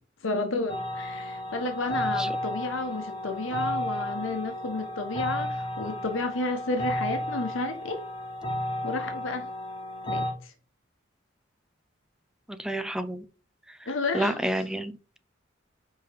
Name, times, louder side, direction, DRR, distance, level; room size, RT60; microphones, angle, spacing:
voice 1, 0.2-8.0 8.8-9.5 10.1-10.5 13.9-14.4, left 3 dB, 80° left, 1.1 m, -31 dB
sound 1, 0.7-10.3, left 1 dB, 25° left, 2.0 m, -33 dB
voice 2, 12.5-13.2 13.7-13.8 14.1-15.2, right 1 dB, 5° right, 0.5 m, -30 dB
5.0 x 4.7 x 4.8 m
head